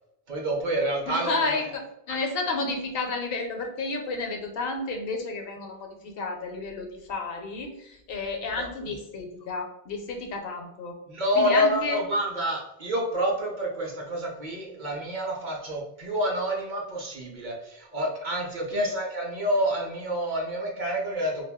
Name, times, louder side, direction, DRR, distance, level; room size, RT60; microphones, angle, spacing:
voice 1, 0.3-1.6 8.6-8.7 11.1-21.4, equal, 55° right, -1 dB, 0.7 m, -28 dB
voice 2, 1.0-11.0 11.4-12.0 18.7-18.9, left 3 dB, 70° left, 3 dB, 0.8 m, -31 dB
2.5 x 2.2 x 3.5 m, 0.84 s
omnidirectional pair, 1.1 m